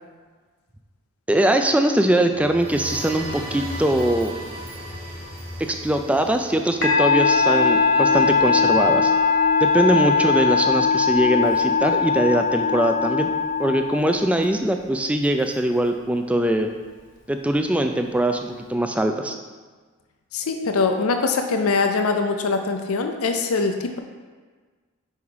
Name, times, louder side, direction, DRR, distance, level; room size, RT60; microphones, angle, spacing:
voice 1, 1.3-4.3 5.6-9.1 9.6-13.3 13.6-16.7 17.3-19.4, right 1 dB, 5° right, 5 dB, 0.3 m, -21 dB
sound 1, 2.2-8.0, right 1 dB, 30° right, 1.3 m, -36 dB
Musical instrument, 6.8-14.4, left 5 dB, 55° left, 0.9 m, -20 dB
Wind instrument woodwind instrument, 7.2-11.0, right 5 dB, 45° right, 0.8 m, -33 dB
voice 2, 20.3-24.0, left 4 dB, 85° left, 5 dB, 0.5 m, -23 dB
5.5 x 4.9 x 4.7 m, 1.4 s
head